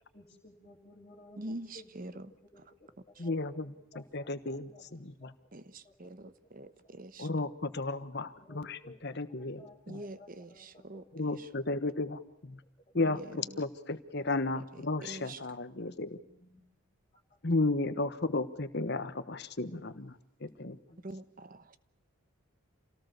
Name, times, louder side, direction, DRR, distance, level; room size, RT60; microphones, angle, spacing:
voice 1, 0.1-3.3 3.6-5.3 5.8-6.3 6.8-7.0 8.4-9.0 9.4-11.0 15.9-16.6 17.1-17.4 20.9-21.1, left 1 dB, 30° left, -4 dB, 3.2 m, -57 dB
voice 2, 1.4-2.6 3.2-3.3 5.5-7.3 9.9-11.5 12.9-13.6 14.7-15.4 21.0-21.8, right 1 dB, 40° right, 13 dB, 1.1 m, -45 dB
voice 3, 3.2-5.3 7.2-8.8 9.0-10.0 11.2-12.6 12.9-16.2 17.4-20.8, left 2 dB, 50° left, 11 dB, 1.3 m, -34 dB
27.5 x 18.0 x 6.8 m, 0.86 s
head